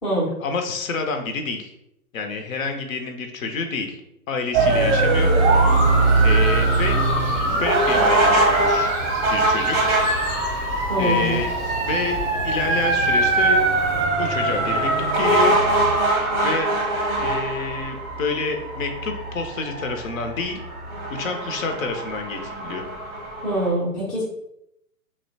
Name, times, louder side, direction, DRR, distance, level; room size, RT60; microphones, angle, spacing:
voice 1, 0.4-1.7 2.1-4.0 4.3-5.3 6.2-7.0 7.6-8.9 9.3-9.8 11.0-11.5 11.8-13.6 14.2-15.6 16.4-16.7 17.2-20.6 21.1-22.8, left 4 dB, 60° left, 4 dB, 0.6 m, -28 dB
sound 1, 4.5-23.7, right 2 dB, 30° right, 0.6 m, -21 dB
sound 2, 5.7-14.1, left 1 dB, 80° left, 1.0 m, -35 dB
voice 2, 10.9-11.4 23.4-24.2, equal, 10° left, -7 dB, 0.4 m, -24 dB
2.7 x 2.1 x 2.6 m, 0.80 s
hypercardioid pair, 125°, 46 cm